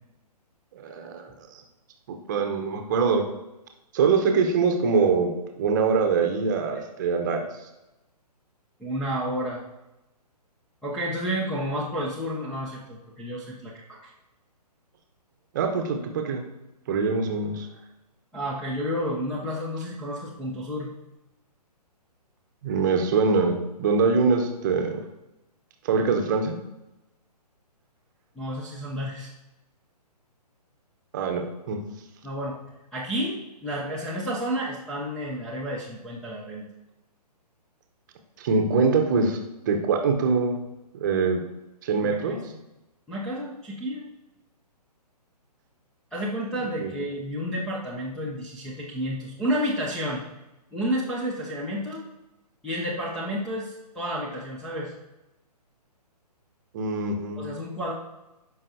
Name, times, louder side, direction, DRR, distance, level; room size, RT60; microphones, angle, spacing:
voice 1, 0.7-1.6 2.3-3.2 3.9-5.3 5.6-7.5 15.5-16.4 16.9-17.7 22.6-25.0 25.8-26.6 31.1-31.8 38.4-39.4 39.7-40.6 40.9-41.4 41.8-42.5 46.8-46.9 56.7-57.4, right 4 dB, 30° right, 4 dB, 0.8 m, -23 dB
voice 2, 8.8-9.6 10.8-14.1 18.3-20.9 28.4-29.3 32.2-32.6 32.9-36.6 42.0-42.4 43.1-44.0 46.1-50.2 50.7-52.0 52.6-54.9 57.4-57.9, equal, 5° left, -6 dB, 0.5 m, -31 dB
13.0 x 5.5 x 2.7 m, 0.96 s
figure-of-eight pair, 130°, 21 cm